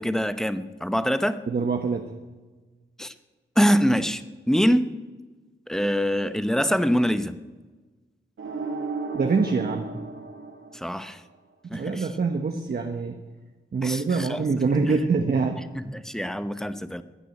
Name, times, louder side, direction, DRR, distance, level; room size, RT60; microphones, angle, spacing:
voice 1, 0.0-1.4 3.0-3.1 3.6-4.9 5.7-7.4 10.7-11.2 11.7-12.1 13.8-14.4 15.9-17.0, equal, ahead, 11 dB, 0.8 m, -24 dB
voice 2, 1.5-2.1 9.1-9.9 11.6-13.2 13.7-15.6, right 4 dB, 50° right, 4 dB, 1.1 m, -25 dB
sound 1, 8.4-11.4, right 4 dB, 75° right, 1.5 m, -34 dB
15.5 x 10.0 x 9.0 m, 1.3 s
wide cardioid pair, 125°, 20 cm